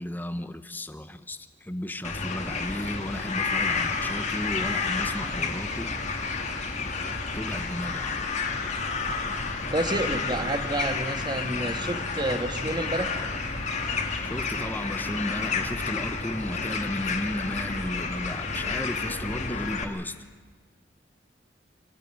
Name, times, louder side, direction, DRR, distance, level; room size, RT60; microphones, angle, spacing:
voice 1, 0.0-5.9 7.3-8.2 14.2-20.1, left 1 dB, 10° left, 11 dB, 0.9 m, -34 dB
sound 1, 2.0-19.8, left 4 dB, 40° left, 2.2 m, -30 dB
voice 2, 9.7-13.1, right 1 dB, 25° right, 8 dB, 1.5 m, -29 dB
24.5 x 15.5 x 9.6 m, 1.5 s
head